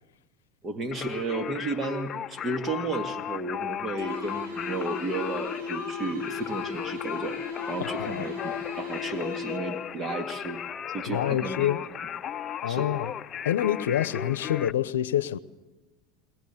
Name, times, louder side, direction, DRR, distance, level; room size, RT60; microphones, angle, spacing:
voice 1, 0.6-7.4 7.7-11.7 12.7-12.9, right 3 dB, 30° right, 2.2 m, -33 dB
Singing, 0.9-14.7, left 9 dB, 35° left, 0.7 m, -36 dB
sound 1, 4.0-9.9, left 5 dB, 65° right, 3.0 m, -37 dB
voice 2, 7.8-8.2 11.1-11.8 12.6-13.1 13.4-15.4, left 11 dB, 80° left, 0.8 m, -27 dB
21.5 x 21.0 x 7.2 m
hypercardioid pair, 85°, 0 cm